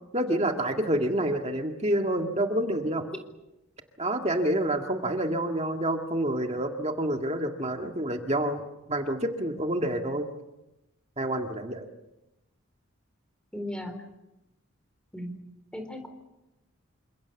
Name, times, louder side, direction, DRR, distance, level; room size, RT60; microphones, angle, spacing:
voice 1, 0.1-3.1 4.0-8.6 8.9-10.3 11.2-11.9, right 1 dB, 30° right, 4 dB, 1.9 m, -28 dB
voice 2, 13.5-14.0 15.1-15.4 15.7-16.1, left 1 dB, 5° left, 7 dB, 4.2 m, -36 dB
29.0 x 26.5 x 7.1 m, 0.95 s
head